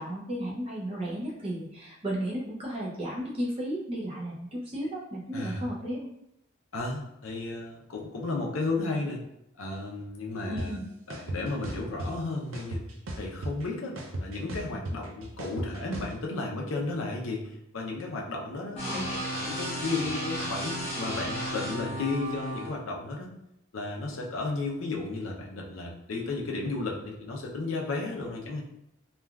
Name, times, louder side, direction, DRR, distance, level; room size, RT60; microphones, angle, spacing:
voice 1, 0.0-6.1 10.5-10.9 18.8-19.1, right 1 dB, 30° right, -5 dB, 0.5 m, -34 dB
voice 2, 5.3-5.7 6.7-9.2 9.6-10.8 11.1-12.9 13.2-19.1 19.4-23.3 23.7-28.6, left 3 dB, 85° left, -1 dB, 0.6 m, -33 dB
sound 1, 10.6-10.7 11.1-12.1 12.5-13.6 14.0-16.1, right 1 dB, 85° right, 0.5 m, -35 dB
sound 2, 18.8-22.7, equal, 30° left, 0.7 m, -33 dB
3.3 x 2.3 x 2.3 m, 0.81 s
head